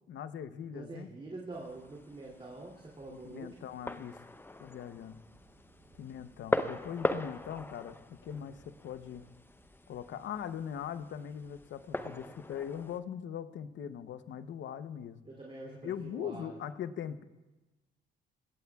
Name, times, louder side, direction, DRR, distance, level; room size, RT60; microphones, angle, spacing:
voice 1, 0.1-1.1 3.1-4.2 4.6-5.2 6.0-9.3 9.9-15.2 15.8-17.2, left 9 dB, 65° left, 12 dB, 0.8 m, -41 dB
voice 2, 0.7-3.5 8.3-8.6 11.9-12.3 15.2-16.6, right 2 dB, 30° right, -3 dB, 2.8 m, -46 dB
sound 1, 1.5-13.0, left 2 dB, 10° left, 0.7 m, -40 dB
Thunder, 5.0-11.5, right 4 dB, 85° right, 3.7 m, -66 dB
21.5 x 17.0 x 2.4 m, 1.1 s
cardioid pair, 90°, 20 cm